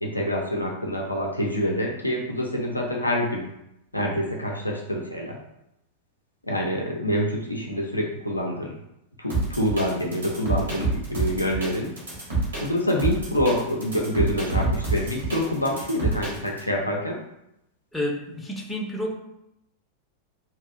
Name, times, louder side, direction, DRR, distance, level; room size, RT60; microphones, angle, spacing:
voice 1, 0.0-3.5 3.9-5.4 6.4-8.7 9.2-11.9 12.6-17.2, equal, 85° left, -1 dB, 0.4 m, -26 dB
sound 1, 9.3-16.6, right 3 dB, 70° right, 1.2 m, -27 dB
voice 2, 17.9-19.1, left 1 dB, 5° left, -1 dB, 0.5 m, -29 dB
2.7 x 2.6 x 2.4 m, 0.83 s
figure-of-eight pair, 90°, 0 cm